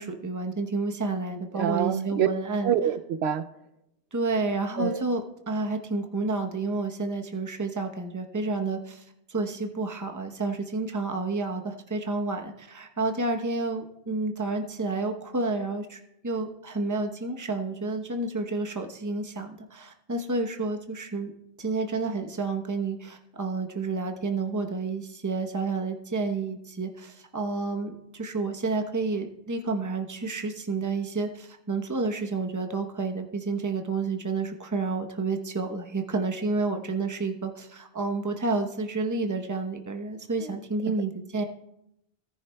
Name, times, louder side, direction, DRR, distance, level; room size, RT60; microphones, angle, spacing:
voice 1, 0.0-2.7 4.1-21.3 21.6-41.4, right 3 dB, 20° right, 4 dB, 0.8 m, -30 dB
voice 2, 1.5-2.3 2.6-3.4 4.8-5.0, right 9 dB, 75° right, 12 dB, 0.8 m, -25 dB
17.5 x 10.5 x 2.2 m, 0.82 s
omnidirectional pair, 1.1 m